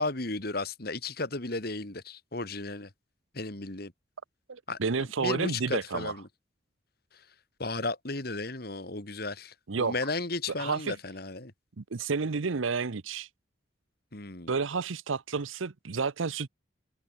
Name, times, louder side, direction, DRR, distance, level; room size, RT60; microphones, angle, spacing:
voice 1, 0.0-2.9 3.3-3.9 4.7-6.2 7.1-7.2 7.6-11.5 14.1-14.5, left 3 dB, 50° left, 2.1 m, -34 dB
voice 2, 4.5-6.1 9.7-9.9 10.6-10.9 11.8-13.3 14.5-16.5, right 4 dB, 85° right, 0.7 m, -30 dB
head